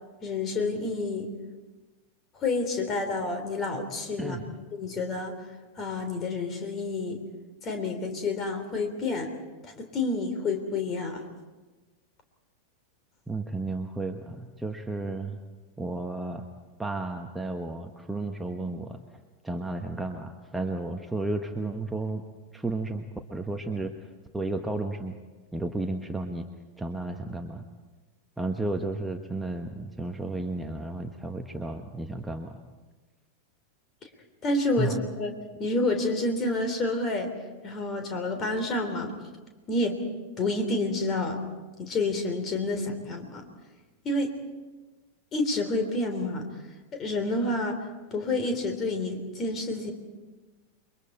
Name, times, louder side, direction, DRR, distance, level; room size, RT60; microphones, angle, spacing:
voice 1, 0.2-1.3 2.3-4.4 4.7-5.3 5.8-7.2 7.6-9.3 9.6-11.2 34.4-37.3 37.6-39.1 39.7-40.0 40.4-41.4 41.8-43.4 44.0-44.3 45.3-46.5 47.0-47.8 48.1-49.9, left 2 dB, 30° left, 6 dB, 3.5 m, -29 dB
voice 2, 4.2-4.6 13.3-15.4 15.8-16.5 16.8-19.0 19.4-22.2 22.5-23.9 24.3-25.2 25.5-26.5 26.8-27.7 28.4-32.6 34.8-35.0, right 2 dB, 5° right, 4 dB, 1.2 m, -33 dB
29.0 x 23.0 x 4.5 m, 1.2 s
figure-of-eight pair, 90°, 0 cm